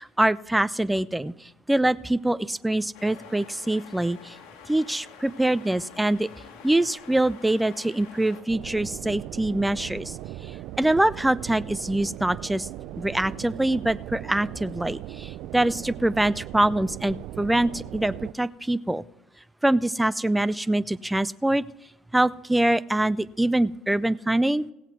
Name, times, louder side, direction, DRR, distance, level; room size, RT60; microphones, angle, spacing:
voice 1, 0.0-4.4 4.7-6.3 6.6-10.2 10.4-12.7 13.0-19.0 19.6-21.6 22.1-24.6, right 1 dB, 5° right, 17 dB, 0.4 m, -24 dB
sound 1, 2.9-8.4, left 6 dB, 75° left, 2.1 m, -47 dB
sound 2, 8.5-18.3, right 14 dB, 70° right, 0.4 m, -38 dB
17.5 x 7.9 x 4.6 m, 0.91 s
supercardioid pair, 105°, 0 cm